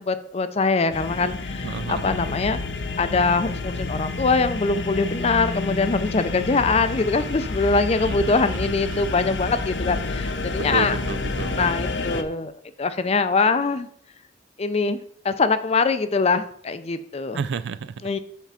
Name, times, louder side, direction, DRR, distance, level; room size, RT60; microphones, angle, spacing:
voice 1, 0.0-2.6 3.0-11.0 11.6-12.5 12.8-13.9 14.6-17.4 18.0-18.2, left 4 dB, 35° left, 12 dB, 0.5 m, -23 dB
sound 1, 0.9-12.2, left 3 dB, 80° left, 0.7 m, -29 dB
voice 2, 1.6-2.2 8.0-9.1 10.7-11.7 17.3-18.1, right 5 dB, 85° right, 15 dB, 0.4 m, -32 dB
5.9 x 4.5 x 5.8 m, 0.62 s
head